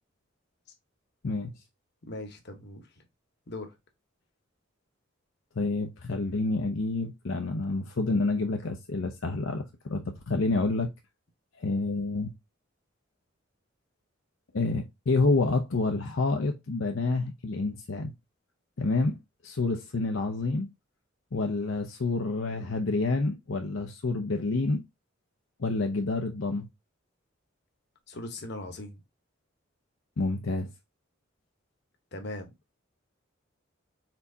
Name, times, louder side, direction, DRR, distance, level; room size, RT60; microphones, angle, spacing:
voice 1, 2.1-3.0 3.5-3.7 28.1-29.0 32.1-32.5, left 2 dB, 55° left, 1.0 m, -39 dB
voice 2, 5.6-10.9 11.6-12.3 14.5-18.1 18.8-19.2 19.4-20.7 21.3-24.8 25.6-26.7 30.2-30.7, left 3 dB, 75° left, 0.7 m, -28 dB
4.4 x 4.1 x 2.7 m
head